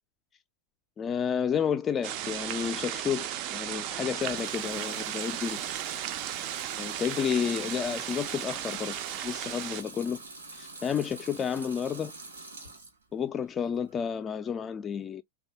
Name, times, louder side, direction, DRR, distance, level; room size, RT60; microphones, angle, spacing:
voice 1, 1.0-5.6 6.8-9.0 9.2-10.2 10.5-12.1 13.1-15.2, left 7 dB, 25° left, 0.3 m, -31 dB
sound 1, 2.0-9.8, right 11 dB, 45° right, 0.4 m, -35 dB
Water tap faucet / Sink (filling or washing) / Liquid, 4.1-13.0 13.4-14.1, right 3 dB, 75° right, 1.1 m, -46 dB
3.2 x 2.3 x 2.7 m
figure-of-eight pair, 95°, 0 cm